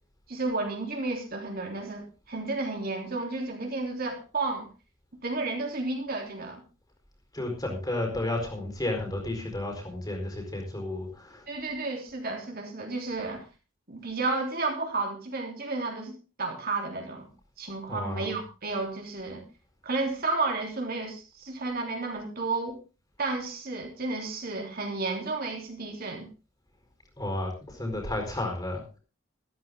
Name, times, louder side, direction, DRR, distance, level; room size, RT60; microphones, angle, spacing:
voice 1, 0.3-4.7 5.2-6.6 11.5-13.5 13.9-17.3 17.6-19.4 19.8-22.8 23.2-26.3, right 3 dB, 50° right, 1 dB, 3.6 m, -32 dB
voice 2, 7.3-11.4 17.9-18.3 27.2-28.8, left 1 dB, 20° left, 1 dB, 4.7 m, -32 dB
14.0 x 13.5 x 3.8 m, 0.31 s
head